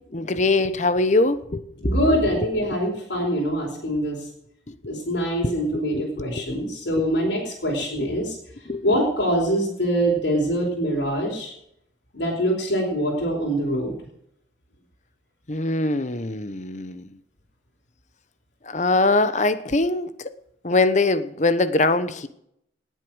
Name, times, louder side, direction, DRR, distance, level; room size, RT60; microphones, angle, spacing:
voice 1, 0.1-2.5 4.7-4.8 5.4-6.4 8.0-8.1 8.7-8.8 15.5-17.2 18.6-20.3 20.6-22.3, left 2 dB, 40° left, 1.0 m, -23 dB
voice 2, 1.8-4.2 4.8-8.3 8.8-11.5 12.1-13.9, equal, 80° left, 4.8 m, -24 dB
19.0 x 8.4 x 6.3 m
head